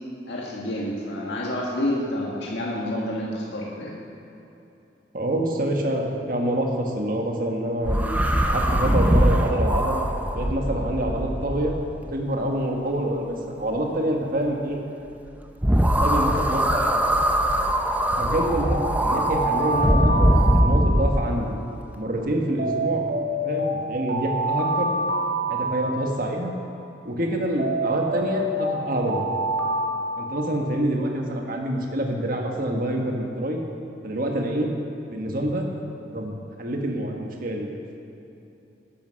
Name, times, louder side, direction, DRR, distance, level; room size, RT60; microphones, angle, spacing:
voice 1, 0.3-3.9, left 1 dB, 80° left, -4 dB, 1.8 m, -28 dB
voice 2, 5.1-10.0 10.3-11.7 12.1-14.8 15.7-17.0 18.2-21.5 22.0-23.0 23.4-24.9 25.5-26.5 27.0-29.3 30.2-33.6 34.0-34.7 35.1-35.7 36.1-37.7, right 1 dB, 50° right, 1 dB, 1.6 m, -26 dB
sound 1, 7.8-12.1 15.6-21.3, equal, 10° right, 0.7 m, -22 dB
Alarm, 18.6-21.2 22.6-26.2 27.6-30.8, right 1 dB, 70° right, 2.1 m, -27 dB
11.5 x 10.5 x 6.4 m, 2.9 s
head